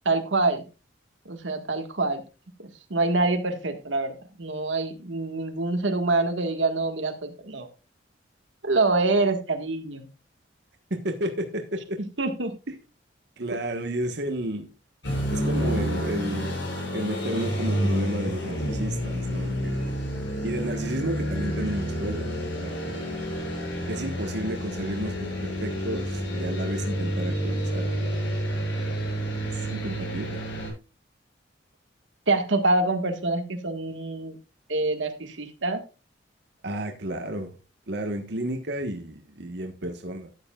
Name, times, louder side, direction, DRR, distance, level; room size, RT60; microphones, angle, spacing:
voice 1, 0.0-0.6 1.2-2.2 2.6-7.7 8.6-10.1 12.2-12.5 32.3-34.4 34.7-35.8, right 2 dB, 85° right, 6 dB, 1.7 m, -26 dB
voice 2, 10.9-12.0 12.7-12.8 13.4-14.7 15.3-19.9 20.4-22.3 22.6-23.1 23.8-28.1 29.5-30.4 36.6-37.5 37.9-40.3, right 1 dB, 65° right, 4 dB, 1.3 m, -32 dB
sound 1, 15.0-30.7, equal, 80° left, 6.5 m, -29 dB
13.5 x 9.8 x 2.4 m, 0.30 s
head